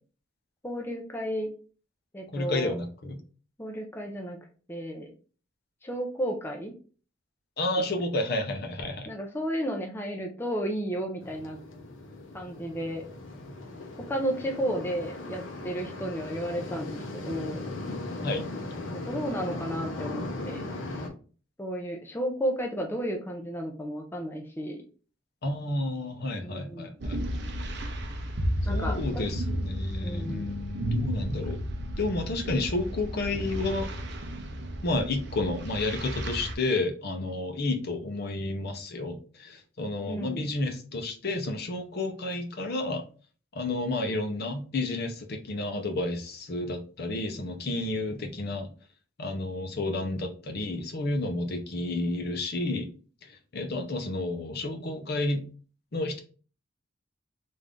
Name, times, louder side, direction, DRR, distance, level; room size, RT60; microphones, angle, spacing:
voice 1, 0.6-1.5 2.1-2.8 3.6-4.4 4.7-5.1 5.8-6.7 9.1-11.6 12.3-13.0 14.1-17.6 18.9-20.6 21.6-24.8 26.4-26.9 28.7-29.2 30.0-30.5 40.0-40.5, equal, 10° left, 1 dB, 0.5 m, -33 dB
voice 2, 2.3-3.2 7.6-9.1 18.2-18.5 25.4-27.2 28.6-31.6 32.0-33.9 34.8-43.0 43.5-48.7 49.2-52.9 53.2-55.4 55.9-56.2, left 2 dB, 55° left, 5 dB, 0.7 m, -31 dB
sound 1, 11.2-21.1, left 2 dB, 90° left, 0.8 m, -38 dB
sound 2, 27.0-36.5, equal, 60° right, 0.6 m, -33 dB
3.4 x 2.6 x 3.6 m, 0.39 s
head